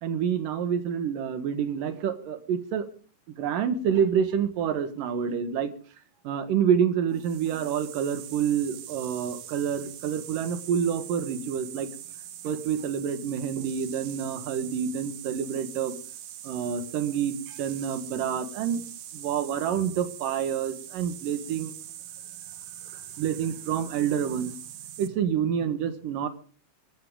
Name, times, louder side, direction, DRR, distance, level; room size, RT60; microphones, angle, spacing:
voice 1, 0.0-2.9 3.3-5.7 6.2-11.9 12.4-16.0 16.4-18.8 19.1-21.7 22.9-24.6 25.0-26.3, right 8 dB, 80° right, 10 dB, 3.1 m, -28 dB
sound 1, 7.1-25.1, right 11 dB, 65° right, 1.7 m, -43 dB
24.5 x 13.0 x 3.8 m, 0.39 s
omnidirectional pair, 3.9 m